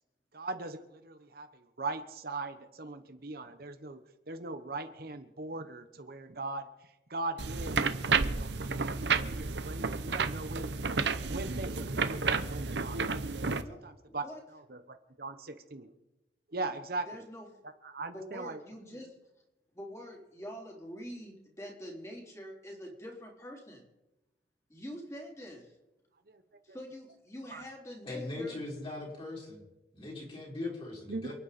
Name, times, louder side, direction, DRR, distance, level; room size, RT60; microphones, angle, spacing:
voice 1, 0.3-4.0 4.3-9.0 9.3-10.7 11.3-13.0 13.7-15.9 16.5-17.2 17.6-18.6 18.9-19.0 26.3-26.4 27.5-27.6 31.1-31.3, right 3 dB, 55° right, 8 dB, 1.1 m, -40 dB
sound 1, 7.4-13.6, right 4 dB, 80° right, 0.9 m, -31 dB
voice 2, 13.4-13.8 14.1-14.4 17.1-17.5 18.1-19.1 19.7-23.8 24.7-25.7 26.6-28.6, equal, 15° left, -1 dB, 3.7 m, -45 dB
voice 3, 28.0-29.6 29.9-31.3, left 2 dB, 30° left, -3 dB, 5.3 m, -39 dB
28.5 x 9.6 x 4.3 m, 0.97 s
head